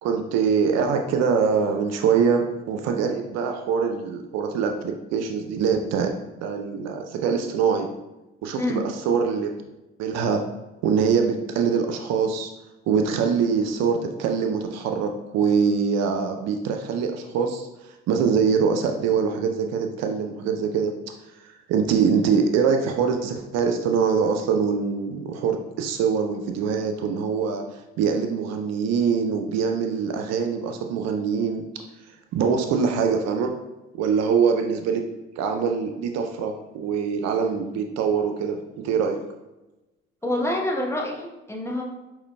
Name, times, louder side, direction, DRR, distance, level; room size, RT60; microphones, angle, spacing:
voice 1, 0.0-6.1 6.4-7.9 8.4-9.5 10.0-10.4 10.8-12.5 12.9-17.7 18.1-20.9 21.4-31.6 32.3-33.5 34.0-35.0 35.4-38.6 38.8-39.2, right 6 dB, 65° right, 5 dB, 0.5 m, -23 dB
voice 2, 40.2-41.8, left 1 dB, 10° left, -1 dB, 0.9 m, -27 dB
4.9 x 3.0 x 2.2 m, 1.0 s
hypercardioid pair, 50°, 29 cm